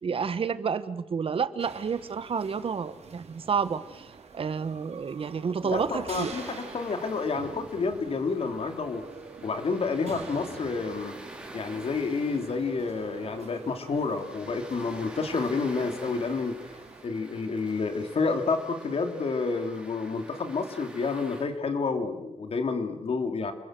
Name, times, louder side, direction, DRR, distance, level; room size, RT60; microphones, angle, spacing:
voice 1, 0.0-4.1 4.3-6.3, right 6 dB, 55° right, 13 dB, 1.3 m, -30 dB
sound 1, 1.6-17.0, right 5 dB, 70° right, 4.3 m, -47 dB
voice 2, 5.6-9.0 9.4-11.2 11.5-16.6 17.0-23.5, left 4 dB, 60° left, 6 dB, 3.1 m, -29 dB
sound 2, 6.2-21.4, right 1 dB, 10° right, 4.9 m, -47 dB
29.0 x 22.5 x 7.7 m, 0.95 s
wide cardioid pair, 170°, 11 cm